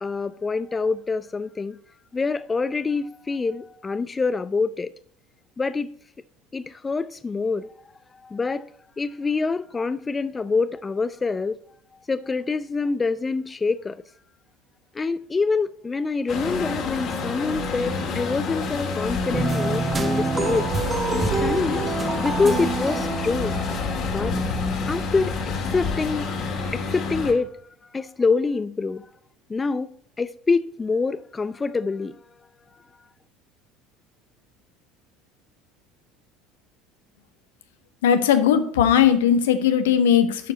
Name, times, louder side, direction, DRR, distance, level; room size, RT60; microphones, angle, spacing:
voice 1, 0.0-1.8 2.1-4.9 5.6-5.9 6.5-7.7 8.2-8.6 9.0-11.6 12.1-14.0 15.0-20.7 21.1-24.4 24.9-25.4 25.7-26.3 26.7-27.5 27.9-29.1 29.5-32.1, left 4 dB, 20° left, 0.4 m, -26 dB
Truck, 16.3-27.3, left 3 dB, 50° left, 2.1 m, -28 dB
sound 1, 19.3-23.9, right 3 dB, 25° right, 1.0 m, -27 dB
voice 2, 38.0-40.5, left 9 dB, 75° left, 0.8 m, -18 dB
11.0 x 4.7 x 4.0 m
hypercardioid pair, 70°, 0 cm